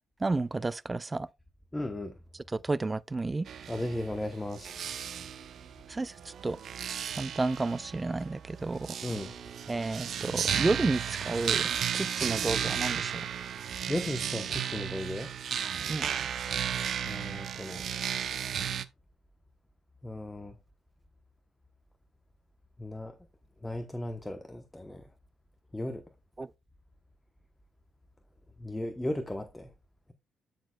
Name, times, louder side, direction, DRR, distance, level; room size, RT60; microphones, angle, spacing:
voice 1, 0.2-1.3 2.5-3.5 5.9-6.6 7.2-8.9 9.7-11.7 11.9-13.3 15.9-16.1 26.4-26.5, right 3 dB, 20° right, 0.3 m, -31 dB
voice 2, 1.7-2.1 3.7-4.8 9.0-9.3 13.9-15.3 16.7-17.9 20.0-20.5 22.8-23.1 23.6-25.1 25.7-26.0 28.6-29.7, left 1 dB, 10° left, 0.9 m, -36 dB
sound 1, 3.5-18.8, right 8 dB, 60° right, 0.7 m, -34 dB
12.0 x 6.4 x 2.3 m
cardioid pair, 90°, 0 cm